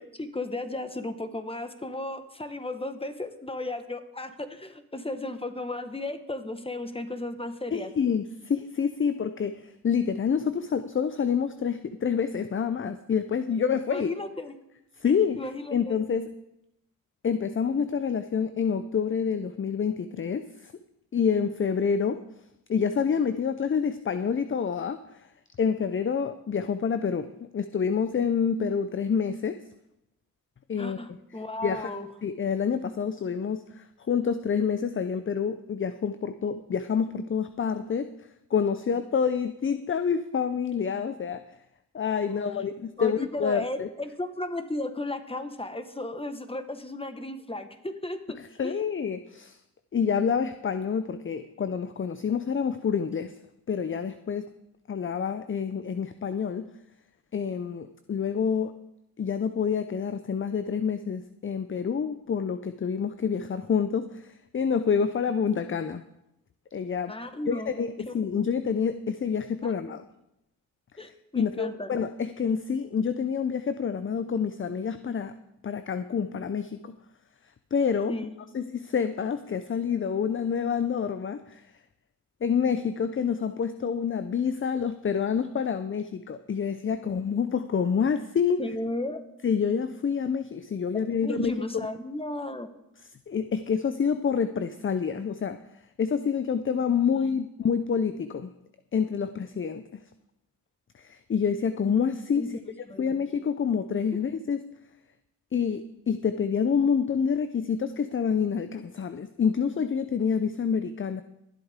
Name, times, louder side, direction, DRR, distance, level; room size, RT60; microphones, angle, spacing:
voice 1, 0.1-7.9 13.9-14.5 15.4-16.0 30.8-32.1 42.2-42.7 43.0-48.4 48.6-48.7 67.1-67.7 68.1-68.2 69.6-69.7 71.0-71.9 78.1-78.3 88.6-89.2 91.1-92.7 97.1-97.2 102.3-102.5 102.9-103.2, left 2 dB, 15° left, 8 dB, 1.5 m, -35 dB
voice 2, 7.7-14.1 15.0-16.3 17.2-20.7 21.1-22.2 22.7-25.3 25.6-29.6 30.7-31.0 31.6-32.0 32.2-38.1 38.5-41.4 41.9-43.9 48.4-49.6 49.9-53.3 53.7-54.5 54.9-56.7 57.3-58.7 59.2-66.0 66.7-67.1 67.5-70.0 71.3-75.3 75.6-77.0 77.7-78.1 78.5-81.7 82.4-88.6 89.4-91.6 93.3-95.6 96.0-98.5 98.9-100.0 100.9-102.5 103.0-104.6 105.5-111.2, left 6 dB, 35° left, 11 dB, 0.6 m, -27 dB
22.0 x 8.0 x 3.6 m, 0.86 s
supercardioid pair, 50°, 37 cm